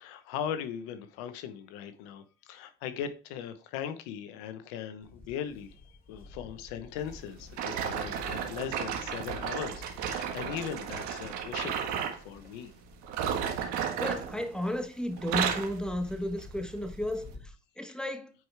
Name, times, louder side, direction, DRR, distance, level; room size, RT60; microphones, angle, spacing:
voice 1, 0.0-12.7, left 8 dB, 85° left, 1.0 m, -39 dB
Livestock farm animals working animals, 5.0-17.5, left 2 dB, 30° left, 2.9 m, -51 dB
sound 1, 7.5-12.2 13.0-14.8 15.1-15.8 16.4-16.6 17.2-17.3, right 8 dB, 75° right, 1.6 m, -33 dB
voice 2, 13.6-17.3 17.8-18.3, left 1 dB, 5° left, 1.4 m, -33 dB
9.3 x 4.7 x 3.4 m
supercardioid pair, 75°, 29 cm